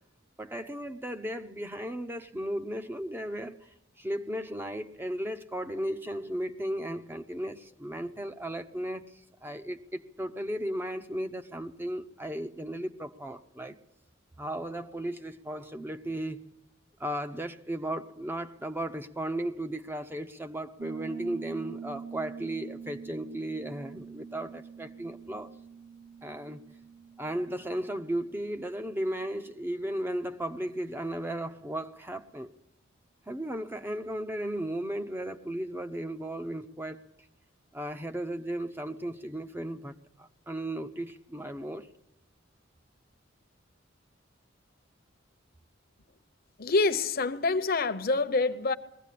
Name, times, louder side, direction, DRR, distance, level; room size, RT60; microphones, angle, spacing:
voice 1, 0.4-3.5 4.0-9.1 9.4-13.7 14.4-16.4 17.0-25.5 26.2-26.6 27.2-32.5 33.3-37.0 37.7-41.9, right 1 dB, 10° right, 0.7 m, -35 dB
Piano, 20.8-29.3, right 6 dB, 80° right, 1.6 m, -45 dB
voice 2, 46.6-48.7, left 3 dB, 50° left, 0.9 m, -26 dB
21.5 x 16.5 x 8.4 m
head